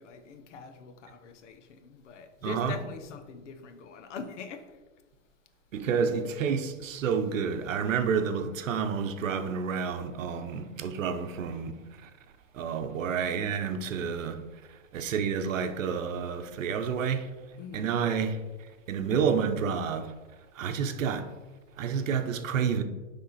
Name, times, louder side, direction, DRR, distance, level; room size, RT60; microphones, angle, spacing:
voice 1, 0.0-4.7 17.6-18.0, left 5 dB, 65° left, 0.9 m, -43 dB
voice 2, 2.4-2.8 5.7-12.1 12.5-14.4 14.7-17.3 17.7-18.4 18.9-20.1 20.5-21.3 21.8-22.8, right 6 dB, 75° right, 0.9 m, -29 dB
9.4 x 3.7 x 4.1 m
hypercardioid pair, 150°, 39 cm